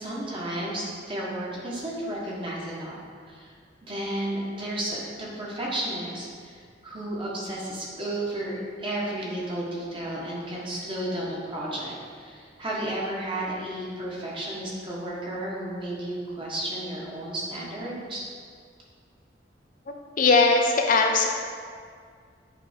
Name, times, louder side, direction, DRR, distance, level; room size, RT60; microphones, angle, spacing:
voice 1, 0.0-3.0 3.3-3.5 3.8-18.2, right 1 dB, 30° right, -5 dB, 1.3 m, -33 dB
voice 2, 20.2-21.3, left 3 dB, 45° left, 2 dB, 0.5 m, -19 dB
8.4 x 3.4 x 5.1 m, 2.1 s
head